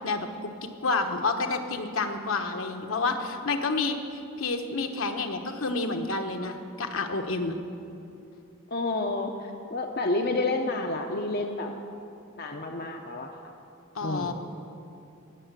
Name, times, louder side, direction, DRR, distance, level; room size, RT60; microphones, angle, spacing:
voice 1, 0.0-7.5 13.9-14.3, left 3 dB, 70° left, 4 dB, 1.2 m, -29 dB
voice 2, 8.7-11.7 12.4-13.3 14.0-14.3, left 2 dB, 45° left, 2 dB, 0.8 m, -29 dB
19.0 x 6.9 x 8.2 m, 2.7 s
head